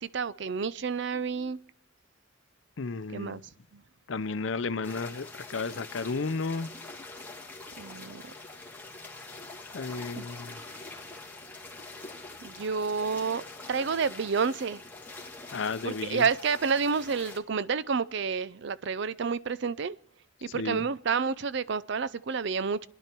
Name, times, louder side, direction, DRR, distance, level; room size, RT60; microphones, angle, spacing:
voice 1, 0.0-1.6 3.1-3.4 3.7-3.8 7.8-8.3 10.2-10.3 12.4-13.4 13.7-14.8 15.8-20.0 20.4-22.9, right 5 dB, 65° right, 0.5 m, -29 dB
voice 2, 2.8-3.4 4.1-6.7 9.7-10.6 15.5-16.3 20.5-20.8, left 4 dB, 70° left, 0.6 m, -33 dB
sound 1, 4.8-17.4, left 3 dB, 10° left, 1.8 m, -45 dB
28.5 x 10.5 x 4.5 m
head